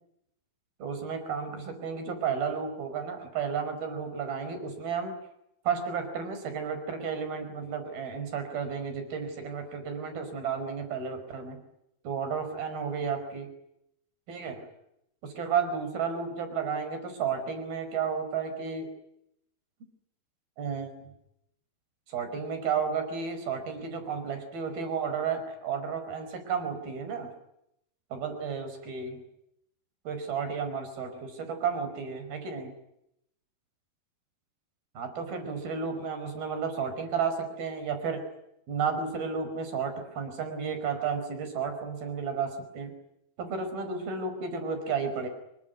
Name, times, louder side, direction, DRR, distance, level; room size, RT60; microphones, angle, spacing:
voice 1, 0.8-5.1 5.7-11.6 12.1-13.5 14.3-14.7 15.2-18.9 20.6-21.1 22.1-27.3 28.1-29.2 30.1-32.7 35.0-38.2 38.7-42.9 43.4-45.3, right 6 dB, 75° right, 8 dB, 6.9 m, -32 dB
26.0 x 23.0 x 9.4 m, 0.78 s
omnidirectional pair, 4.3 m